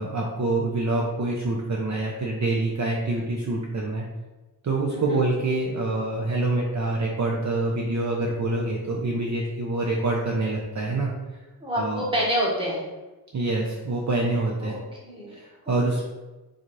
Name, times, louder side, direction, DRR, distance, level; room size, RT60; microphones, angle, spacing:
voice 1, 0.0-4.0 4.6-11.1 11.8-12.0 13.3-14.8 15.3-16.0, right 2 dB, 45° right, -2 dB, 0.7 m, -26 dB
voice 2, 11.6-12.8 14.6-15.3, equal, 15° right, -4 dB, 1.5 m, -27 dB
4.0 x 3.9 x 3.2 m, 1.2 s
wide cardioid pair, 80°, 38 cm